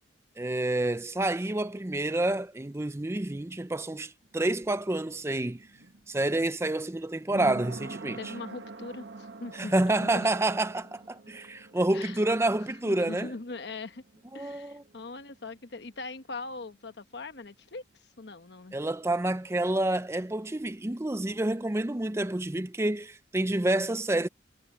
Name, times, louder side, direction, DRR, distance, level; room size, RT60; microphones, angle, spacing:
voice 1, 0.4-5.7 6.1-8.3 9.5-13.3 14.3-14.8 18.7-24.3, right 2 dB, 15° right, 0.5 m, -28 dB
sound 1, 4.2-15.8 16.0-16.1, right 2 dB, 70° right, 1.5 m, -46 dB
voice 2, 8.2-9.7 10.0-10.3 11.9-12.4 12.9-14.0 14.3-17.8 18.2-18.8, left 3 dB, 65° left, 1.1 m, -41 dB
head